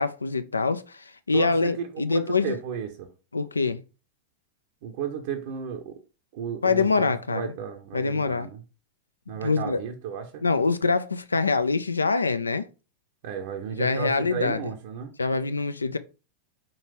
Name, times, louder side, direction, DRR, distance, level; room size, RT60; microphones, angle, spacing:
voice 1, 0.0-2.6 3.3-3.8 6.6-7.5 7.9-8.5 9.4-9.8 10.4-12.7 13.8-14.6 15.2-16.0, left 4 dB, 80° left, 0.3 m, -25 dB
voice 2, 1.3-3.1 4.8-6.0 6.3-8.6 9.3-10.4 13.2-15.1, right 7 dB, 50° right, 0.6 m, -34 dB
4.4 x 3.8 x 2.9 m
figure-of-eight pair, 90°, 0 cm